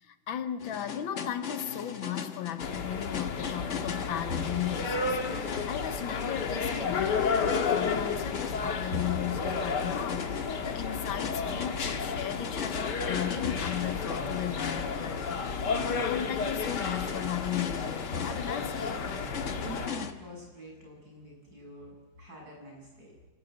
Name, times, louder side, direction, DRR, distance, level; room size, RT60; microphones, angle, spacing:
voice 1, 0.0-15.5 16.0-19.1, left 11 dB, 85° left, 1.8 m, -36 dB
sound 1, 0.6-20.1, left 7 dB, 45° left, 1.2 m, -39 dB
sound 2, 2.6-19.9, left 5 dB, 60° left, 2.0 m, -32 dB
voice 2, 19.6-23.2, equal, 50° right, 7.5 m, -46 dB
28.0 x 12.5 x 9.2 m
omnidirectional pair, 2.1 m